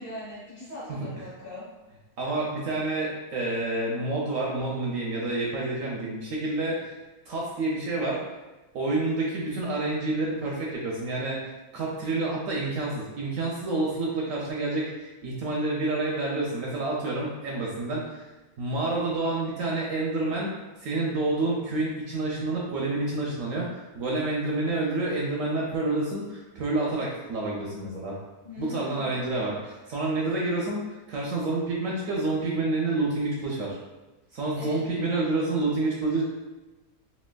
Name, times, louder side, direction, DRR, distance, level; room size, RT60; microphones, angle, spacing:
voice 1, 0.0-1.6 28.4-29.2 34.5-34.8, left 1 dB, 35° left, -10 dB, 1.4 m, -40 dB
voice 2, 0.9-1.2 2.2-7.0 7.3-8.2 8.7-11.4 11.7-18.3 18.6-20.5 20.8-28.2 28.6-33.8 34.3-36.2, right 2 dB, 70° right, -3 dB, 0.9 m, -28 dB
3.2 x 2.8 x 2.2 m, 1.1 s
omnidirectional pair, 1.6 m